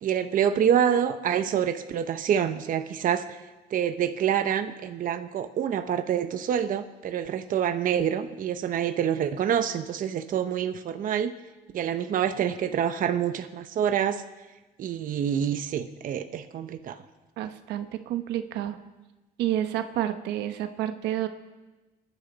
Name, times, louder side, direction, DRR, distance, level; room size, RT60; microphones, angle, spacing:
voice 1, 0.0-3.2 3.7-11.3 11.7-14.2 14.8-17.0, right 9 dB, 55° right, 8 dB, 0.9 m, -26 dB
voice 2, 17.4-18.8 19.4-21.3, right 12 dB, 85° right, 8 dB, 1.1 m, -29 dB
30.0 x 10.0 x 4.1 m, 1.2 s
cardioid pair, 110°, 17 cm